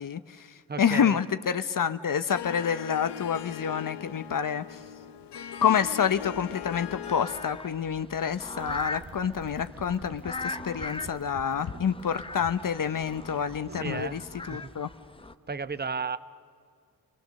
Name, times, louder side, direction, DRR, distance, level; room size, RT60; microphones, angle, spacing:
voice 1, 0.0-4.8 5.6-14.2 14.5-14.9, left 7 dB, 55° left, 12 dB, 0.9 m, -28 dB
voice 2, 0.7-1.2 13.7-14.2 14.5-14.6 15.5-16.2, right 5 dB, 25° right, 14 dB, 0.8 m, -33 dB
Harp, 2.3-7.7, left 10 dB, 85° left, 0.8 m, -40 dB
sound 1, 5.8-15.3, left 3 dB, 15° left, 0.8 m, -40 dB
sound 2, 8.6-14.2, right 4 dB, 60° right, 1.8 m, -46 dB
28.5 x 20.5 x 6.5 m, 2.1 s
supercardioid pair, 45°, 40 cm